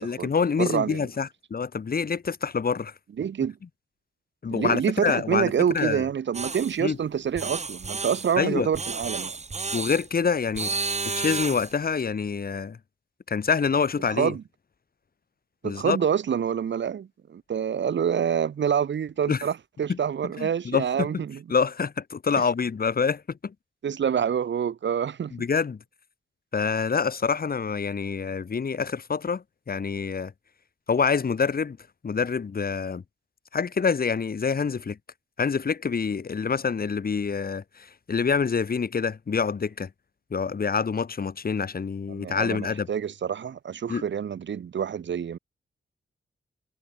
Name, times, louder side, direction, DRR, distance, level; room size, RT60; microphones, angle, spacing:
voice 1, 0.0-2.9 4.4-6.0 6.8-7.0 8.4-8.7 9.7-10.7 11.1-12.8 13.3-14.3 15.6-16.0 19.3-19.4 19.9-20.0 20.4-21.1 21.5-23.5 25.3-25.8 26.5-30.3 30.9-31.8 32.0-33.0 33.5-35.0 35.4-39.9 40.3-42.9 43.9-44.1, left 5 dB, 55° left, 6.4 m, -26 dB
voice 2, 0.6-1.0 3.2-3.5 4.5-9.3 14.2-14.4 15.6-21.4 23.8-25.3 42.1-45.4, right 8 dB, 80° right, 2.4 m, -27 dB
sound 1, 6.3-6.8 7.4-8.4 8.7-10.1 10.5-11.7, right 4 dB, 35° right, 7.3 m, -31 dB
wide cardioid pair, 120°, 19 cm